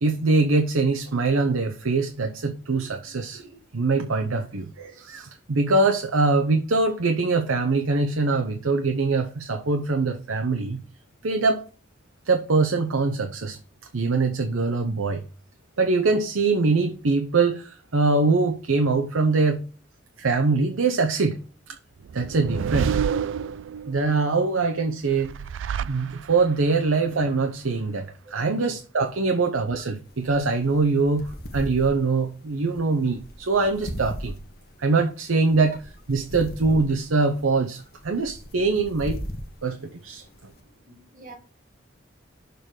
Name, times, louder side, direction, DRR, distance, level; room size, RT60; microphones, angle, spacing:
voice 1, 0.0-3.4 3.7-10.8 11.2-11.6 12.3-13.6 13.9-15.2 15.8-19.7 20.2-21.4 22.1-23.0 23.9-25.3 25.8-34.3 34.8-39.2 39.6-40.2, right 3 dB, 90° right, 0.7 m, -23 dB
sound 1, 22.0-24.1 25.1-26.6, right 7 dB, 70° right, 0.3 m, -28 dB
voice 2, 28.2-28.6 36.1-36.2 40.9-41.3, right 2 dB, 40° right, 2.1 m, -47 dB
sound 2, 30.1-40.6, equal, 50° left, 1.2 m, -39 dB
6.8 x 3.8 x 4.8 m
head